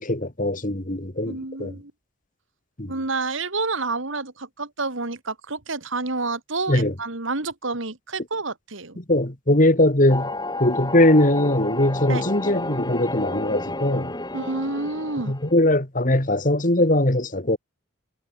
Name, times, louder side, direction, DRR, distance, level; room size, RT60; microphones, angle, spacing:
voice 1, 0.0-1.7 2.8-2.9 6.7-6.9 9.0-14.2 15.3-17.6, left 1 dB, 40° left, 2.4 m, -21 dB
voice 2, 1.2-1.9 2.9-9.0 12.1-12.2 14.3-15.3, right 3 dB, 65° right, 2.3 m, -29 dB
sound 1, 10.1-15.5, left 2 dB, 20° left, 4.9 m, -31 dB
head